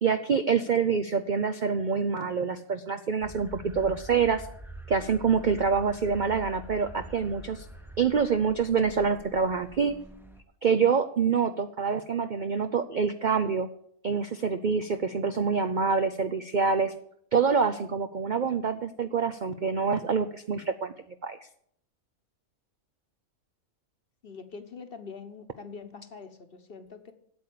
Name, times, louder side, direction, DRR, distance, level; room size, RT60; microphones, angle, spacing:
voice 1, 0.0-4.5 4.9-7.6 8.0-10.0 10.6-13.7 14.0-16.9 17.3-20.9 21.2-21.4, right 5 dB, 60° right, 9 dB, 0.5 m, -26 dB
sound 1, 3.2-10.4, right 1 dB, ahead, 0.7 m, -46 dB
voice 2, 24.2-27.1, left 5 dB, 45° left, 8 dB, 1.1 m, -44 dB
8.8 x 8.0 x 8.5 m, 0.68 s
omnidirectional pair, 1.6 m